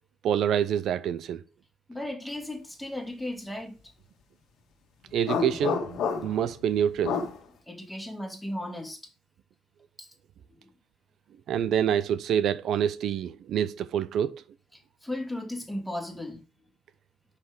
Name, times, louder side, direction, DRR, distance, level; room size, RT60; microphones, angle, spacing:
voice 1, 0.2-1.4 5.1-5.8 6.2-7.2 11.5-14.4, right 9 dB, 75° right, 0.4 m, -26 dB
voice 2, 1.9-3.8 7.7-9.0 10.0-10.1 10.6-10.7 14.7-16.4, left 1 dB, 5° left, 2.3 m, -36 dB
sound 1, 5.2-6.5 7.0-7.4, left 5 dB, 80° left, 1.5 m, -29 dB
6.0 x 5.8 x 4.8 m
cardioid pair, 90°, 0 cm